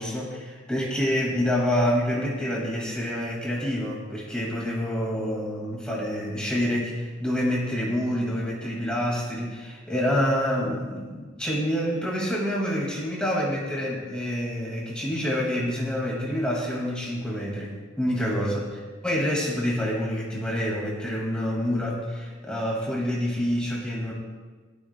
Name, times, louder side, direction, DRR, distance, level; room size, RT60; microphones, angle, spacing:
voice 1, 0.0-18.6 19.0-24.1, equal, 5° left, -4 dB, 2.0 m, -27 dB
17.5 x 13.0 x 2.2 m, 1.4 s
head